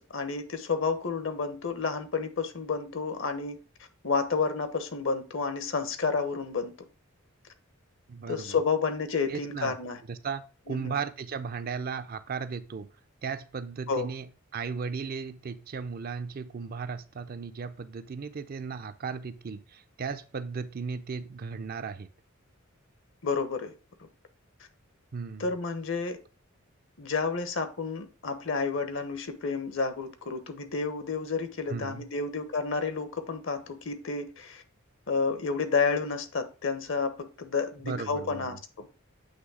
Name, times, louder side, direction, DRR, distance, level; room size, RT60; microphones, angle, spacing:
voice 1, 0.0-3.6 4.0-6.7 8.3-10.0 10.7-11.0 13.9-14.1 23.2-23.7 25.4-26.2 27.0-34.6 35.1-38.9, left 4 dB, 60° left, 1.0 m, -30 dB
voice 2, 8.1-8.6 9.3-9.8 10.1-12.9 13.2-22.1 25.1-25.5 31.7-32.1 37.8-38.6, right 5 dB, 45° right, 0.4 m, -36 dB
8.2 x 3.1 x 4.7 m
head